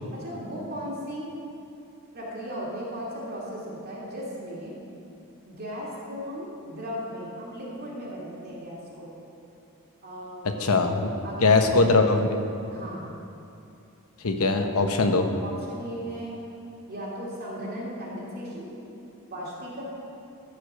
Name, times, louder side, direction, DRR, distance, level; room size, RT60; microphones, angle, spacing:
voice 1, 0.1-1.3 2.1-4.7 5.4-9.1 10.0-10.6 11.2-11.8 12.7-13.1 15.4-16.3 16.9-18.7 19.3-19.8, equal, 45° right, -5 dB, 2.4 m, -36 dB
voice 2, 10.6-11.1 11.4-12.3 14.2-15.3, left 3 dB, 75° left, 5 dB, 0.9 m, -21 dB
14.0 x 5.0 x 6.5 m, 2.7 s
head